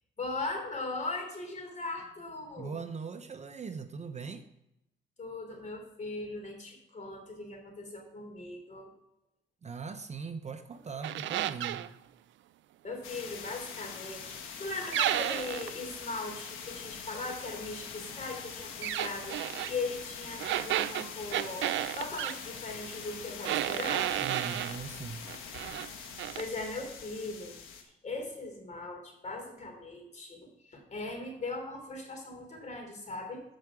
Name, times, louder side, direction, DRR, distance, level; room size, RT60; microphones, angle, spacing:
voice 1, 0.2-2.8 5.2-8.9 12.8-24.2 26.4-27.6 27.8-33.4, left 3 dB, 35° left, 2 dB, 3.1 m, -39 dB
voice 2, 2.6-4.5 9.6-11.9 24.2-25.2, right 5 dB, 35° right, 8 dB, 0.7 m, -40 dB
sound 1, 11.0-11.9 14.9-15.7 18.8-19.7 20.4-22.4 23.4-24.8 25.3-25.9 26.2-26.5, right 13 dB, 70° right, 0.4 m, -32 dB
sound 2, 13.0-27.8, left 6 dB, 90° left, 1.4 m, -44 dB
14.0 x 4.8 x 4.8 m, 0.85 s
cardioid pair, 90°, 20 cm